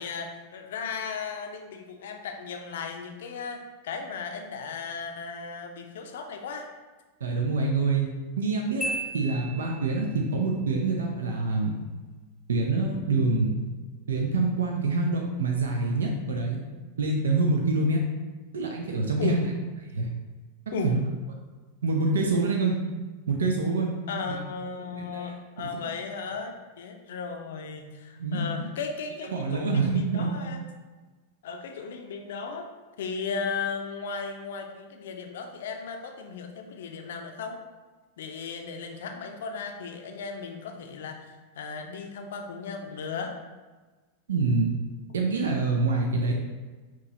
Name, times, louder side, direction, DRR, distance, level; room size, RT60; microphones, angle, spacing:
voice 1, 0.0-6.7 19.2-19.4 20.7-20.9 24.1-30.6 31.4-32.7 33.0-37.6 38.2-43.3, left 5 dB, 60° left, 5 dB, 0.5 m, -36 dB
voice 2, 7.2-8.1 8.4-11.7 12.5-13.6 14.1-16.6 17.0-18.0 18.5-19.4 19.9-20.1 20.8-21.0 21.8-22.7 23.3-23.9 24.3-24.4 24.9-25.3 25.7-25.8 28.2-28.7 29.3-30.3 44.3-44.8 45.1-46.3, right 3 dB, 65° right, 1 dB, 0.5 m, -26 dB
Marimba xylophone, 8.8-10.2, right 1 dB, 5° left, 0.9 m, -34 dB
5.8 x 3.0 x 2.8 m, 1.3 s
figure-of-eight pair, 90°, 0 cm